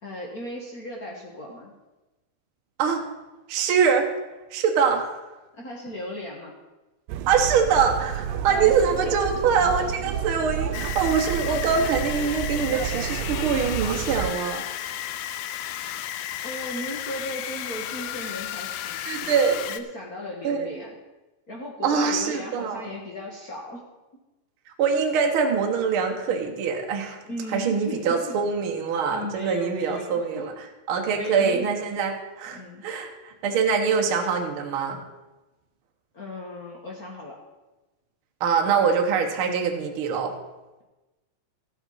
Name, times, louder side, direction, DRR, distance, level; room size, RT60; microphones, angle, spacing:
voice 1, 0.0-1.7 5.5-6.5 8.5-8.7 9.0-9.1 16.4-20.9 21.5-23.8 27.2-28.1 29.1-30.5 31.1-31.7 32.5-32.8 36.1-37.4, left 1 dB, 60° left, -1 dB, 0.9 m, -36 dB
voice 2, 3.5-4.1 4.5-5.2 7.3-14.6 19.0-19.6 20.4-20.6 21.8-22.8 24.8-27.2 27.5-30.5 30.9-35.0 38.4-40.3, right 6 dB, 60° right, 2 dB, 1.4 m, -24 dB
sound 1, 7.1-14.3, right 10 dB, 85° right, 2.3 m, -31 dB
sound 2, 10.7-19.8, left 11 dB, 85° left, 2.3 m, -33 dB
14.0 x 7.8 x 5.5 m, 1.1 s
omnidirectional pair, 3.9 m